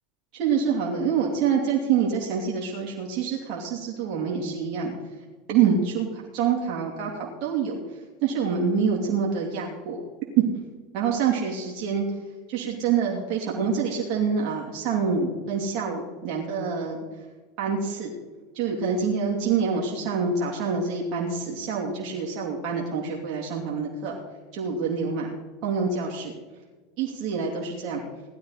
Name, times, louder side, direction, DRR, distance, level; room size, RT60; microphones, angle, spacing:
voice 1, 0.3-4.9 5.5-7.8 8.2-10.0 10.9-12.0 12.5-17.0 17.6-18.1 18.5-24.2 24.5-25.3 25.6-26.3 27.0-28.0, right 6 dB, 60° right, -2 dB, 2.8 m, -26 dB
18.0 x 12.0 x 4.1 m, 1.3 s
hypercardioid pair, 80°, 0 cm